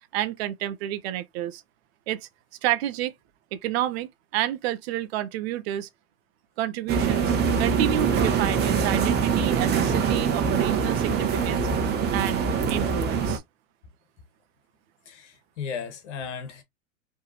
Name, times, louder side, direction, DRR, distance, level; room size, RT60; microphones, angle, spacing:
voice 1, 0.1-1.6 2.1-2.2 2.6-3.1 3.5-5.9 6.6-7.3 7.6-11.7 12.1-12.4 12.7-13.4, right 12 dB, 50° right, 0.8 m, -29 dB
sound 1, 6.9-13.4, right 6 dB, 25° right, 1.1 m, -24 dB
voice 2, 15.1-16.6, left 6 dB, 60° left, 1.6 m, -35 dB
4.7 x 3.4 x 2.9 m
hypercardioid pair, 110°, 39 cm